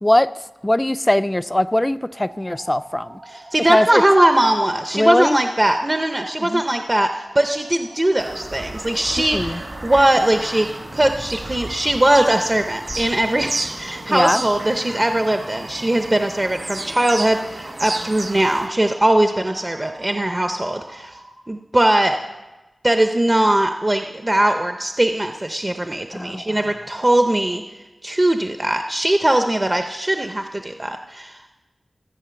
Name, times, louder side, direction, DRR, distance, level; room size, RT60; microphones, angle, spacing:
voice 1, 0.0-3.2 3.7-4.0 4.9-5.4 6.4-6.6 9.3-9.6 14.1-14.4 26.1-26.7, left 1 dB, 15° left, 13 dB, 0.4 m, -20 dB
sound 1, 2.1-21.5, right 1 dB, 85° right, 3.0 m, -42 dB
voice 2, 3.3-21.2 21.5-22.2 22.8-27.6 28.0-31.5, right 1 dB, 30° right, 6 dB, 0.7 m, -20 dB
Bird vocalization bird call bird song, 8.2-18.7, right 2 dB, 55° right, 1.7 m, -33 dB
14.5 x 8.2 x 6.9 m, 1.1 s
wide cardioid pair, 70°, 0 cm